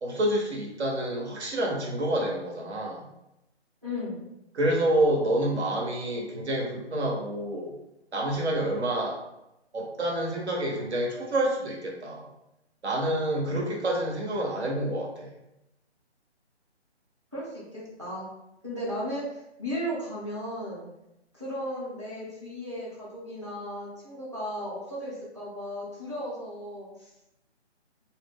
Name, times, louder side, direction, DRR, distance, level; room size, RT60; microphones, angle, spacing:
voice 1, 0.0-3.1 4.5-7.7 8.1-9.2 9.7-12.3 12.8-15.3, right 1 dB, 70° right, -1 dB, 0.9 m, -28 dB
voice 2, 3.8-4.3 17.3-18.3 18.6-20.9 21.3-27.1, equal, 25° right, -6 dB, 0.6 m, -35 dB
2.3 x 2.0 x 3.5 m, 0.88 s
hypercardioid pair, 175°, 34 cm